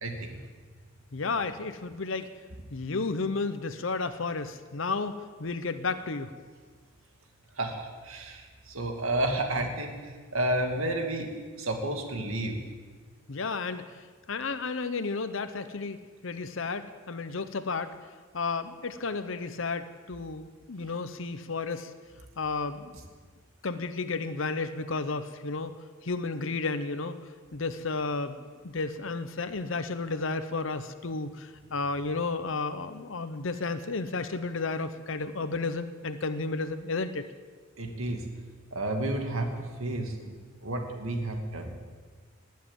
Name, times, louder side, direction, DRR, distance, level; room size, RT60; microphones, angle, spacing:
voice 1, 0.0-0.4 7.6-11.3 11.6-12.6 37.8-38.2 38.7-40.3 40.6-41.8, right 1 dB, 80° right, 3 dB, 2.3 m, -31 dB
voice 2, 1.1-2.3 2.7-6.3 13.3-16.0 16.2-17.9 18.3-21.9 22.4-22.9 23.6-27.2 27.5-28.4 28.6-37.2, left 3 dB, 65° left, 10 dB, 0.8 m, -32 dB
20.0 x 7.5 x 9.1 m, 1.5 s
head